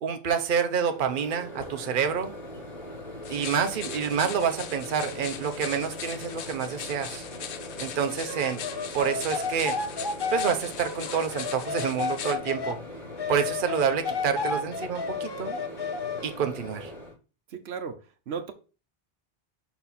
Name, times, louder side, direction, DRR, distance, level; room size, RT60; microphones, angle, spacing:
voice 1, 0.0-2.3 3.3-7.2 7.8-8.6 8.9-9.7 10.3-12.8 13.3-15.6 16.2-16.9, right 7 dB, 55° right, 0.9 m, -28 dB
Microwave oven, 0.9-17.1, left 1 dB, 65° left, 4.0 m, -41 dB
sound 1, 3.2-12.4, left 8 dB, 85° left, 1.0 m, -40 dB
sound 2, 8.2-12.8 13.2-16.4, left 5 dB, 40° left, 0.4 m, -32 dB
voice 2, 17.5-18.5, right 6 dB, 80° right, 1.0 m, -36 dB
5.9 x 4.2 x 4.1 m
omnidirectional pair, 1.1 m